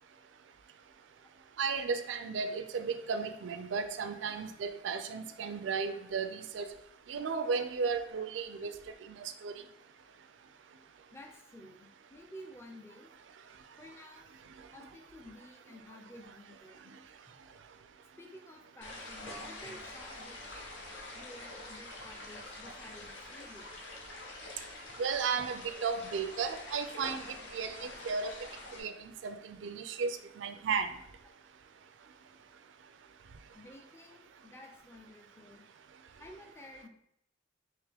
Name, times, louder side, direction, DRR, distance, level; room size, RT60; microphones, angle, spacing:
voice 1, 1.6-6.7 7.1-8.7 9.4-9.5 25.0-27.2 27.5-28.3 28.8-30.9, right 5 dB, 80° right, 9 dB, 0.4 m, -34 dB
voice 2, 11.1-13.1 13.8-14.2 14.7-16.9 18.2-20.4 21.1-23.8 24.9-25.0 25.4-25.5 27.3-27.4 30.5-30.6 33.5-35.6 36.2-36.9, left 1 dB, 15° left, 1 dB, 0.5 m, -52 dB
sound 1, 17.3-17.4 17.8-17.9 19.3-23.3 24.5-24.6 27.0-29.0, equal, 30° left, 1.2 m, -54 dB
sound 2, 18.8-28.8, left 2 dB, 75° left, 0.8 m, -46 dB
3.6 x 2.9 x 3.4 m, 0.73 s
head